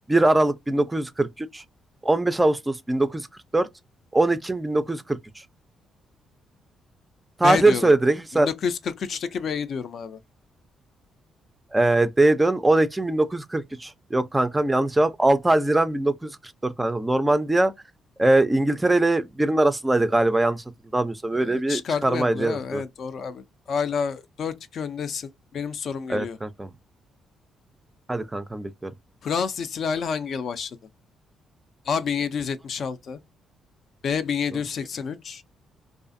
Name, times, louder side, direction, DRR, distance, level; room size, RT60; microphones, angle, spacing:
voice 1, 0.1-1.6 2.0-3.3 3.5-3.7 4.1-5.2 7.4-8.5 11.7-16.3 16.6-17.7 18.2-20.6 20.9-22.8 26.1-26.7 28.1-28.9, right 2 dB, 15° right, 0.3 m, -21 dB
voice 2, 7.4-7.9 8.3-10.2 21.3-26.4 29.2-30.8 31.8-33.2 34.0-35.4, left 6 dB, 60° left, 0.4 m, -29 dB
2.4 x 2.4 x 2.5 m
cardioid pair, 90°, 0 cm